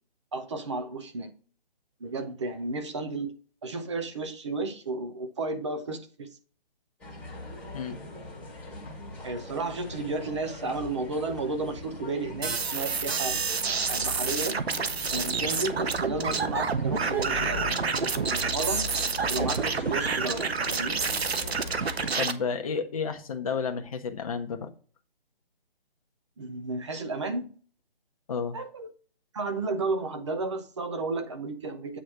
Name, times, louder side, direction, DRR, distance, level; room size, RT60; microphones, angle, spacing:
voice 1, 0.3-1.3 2.0-3.3 3.6-6.3 9.2-13.4 13.9-14.6 15.1-18.9 19.3-21.0 26.4-27.5 28.5-28.9 29.3-32.0, right 3 dB, 30° right, 0.7 m, -33 dB
sound 1, 7.0-22.1, left 2 dB, 5° left, 1.4 m, -40 dB
sound 2, 12.4-22.3, right 5 dB, 90° right, 0.8 m, -28 dB
voice 2, 22.2-24.7 28.3-28.6, left 6 dB, 35° left, 0.8 m, -31 dB
8.0 x 3.1 x 5.7 m
figure-of-eight pair, 155°, 30 cm